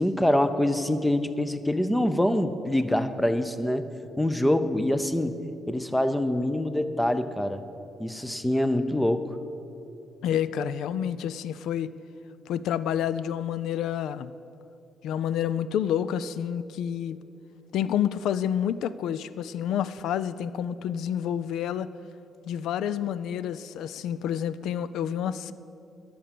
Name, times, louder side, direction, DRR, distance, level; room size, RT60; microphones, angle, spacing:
voice 1, 0.0-3.9 4.2-5.3 5.7-7.6 8.0-9.2, left 1 dB, 5° left, 11 dB, 0.7 m, -25 dB
voice 2, 10.2-11.9 12.5-14.3 15.0-17.2 17.7-21.9 22.5-25.5, left 9 dB, 80° left, 16 dB, 0.4 m, -29 dB
12.0 x 6.9 x 7.5 m, 2.8 s
cardioid pair, 90°, 0 cm